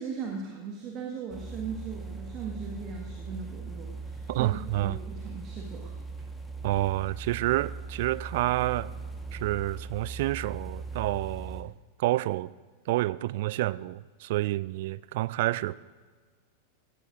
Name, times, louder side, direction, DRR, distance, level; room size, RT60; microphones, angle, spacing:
voice 1, 0.0-4.5 4.8-5.9, right 5 dB, 35° right, 0 dB, 1.6 m, -38 dB
sound 1, 1.3-11.6, right 4 dB, ahead, 1.3 m, -39 dB
voice 2, 4.3-5.0 6.6-8.9 9.3-11.7 12.0-12.5 12.9-15.7, right 17 dB, 50° right, 18 dB, 0.3 m, -29 dB
17.5 x 15.0 x 2.6 m, 1.4 s
figure-of-eight pair, 90°, 0 cm